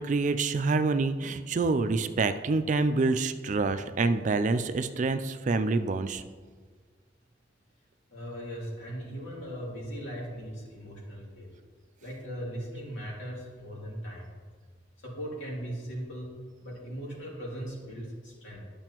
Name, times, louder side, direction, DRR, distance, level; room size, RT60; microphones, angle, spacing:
voice 1, 0.0-6.2, right 3 dB, 40° right, 10 dB, 0.4 m, -27 dB
voice 2, 8.1-11.5 12.0-14.3 15.0-16.3 16.6-18.6, equal, 85° left, -5 dB, 2.7 m, -39 dB
10.5 x 6.8 x 3.0 m, 1.5 s
head